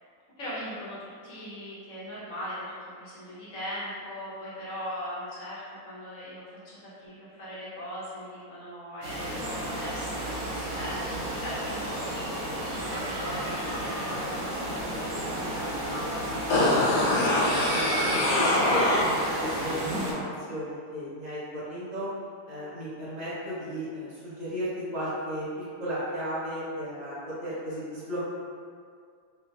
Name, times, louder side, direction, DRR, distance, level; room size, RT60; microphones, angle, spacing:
voice 1, 0.4-6.5 6.7-10.1 10.4-12.0 12.7-16.1, equal, 55° left, -9 dB, 1.1 m, -39 dB
sound 1, 9.0-20.1, right 1 dB, 65° right, 1.0 m, -32 dB
sound 2, 16.5-19.5 19.8-19.9, left 1 dB, 80° left, 1.2 m, -24 dB
voice 2, 17.7-22.1 22.5-28.3, equal, 35° right, -10 dB, 0.7 m, -34 dB
2.7 x 2.6 x 2.4 m, 2.2 s
omnidirectional pair, 1.7 m